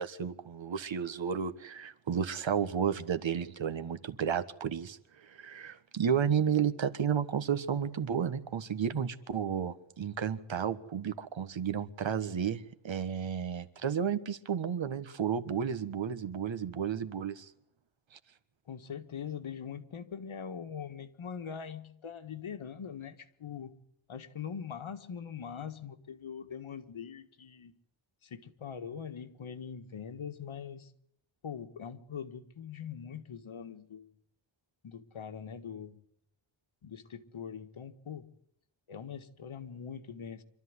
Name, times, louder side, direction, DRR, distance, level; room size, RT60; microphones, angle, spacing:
voice 1, 0.0-5.0 5.3-17.5, right 7 dB, 70° right, 1.4 m, -32 dB
voice 2, 18.7-23.7 24.1-27.7 28.2-30.9 31.4-34.1 34.8-36.0 36.8-38.3 38.9-40.4, left 7 dB, 90° left, 1.8 m, -42 dB
25.5 x 13.5 x 9.7 m
wide cardioid pair, 155°, 47 cm